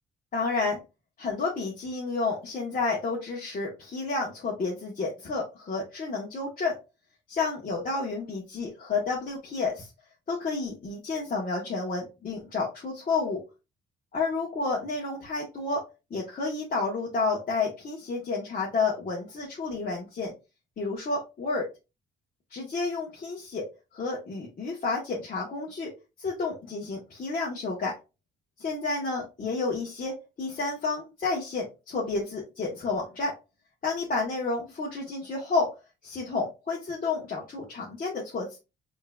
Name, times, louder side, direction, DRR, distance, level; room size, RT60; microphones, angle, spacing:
voice 1, 0.3-0.8 1.2-6.8 7.3-9.9 10.3-13.4 14.1-20.3 20.8-21.7 22.5-23.6 23.9-25.9 26.2-27.9 28.6-33.3 33.8-35.7 36.0-38.6, left 3 dB, 45° left, -4 dB, 1.4 m, -30 dB
5.6 x 3.2 x 2.4 m, 0.27 s
cardioid pair, 90°, 20 cm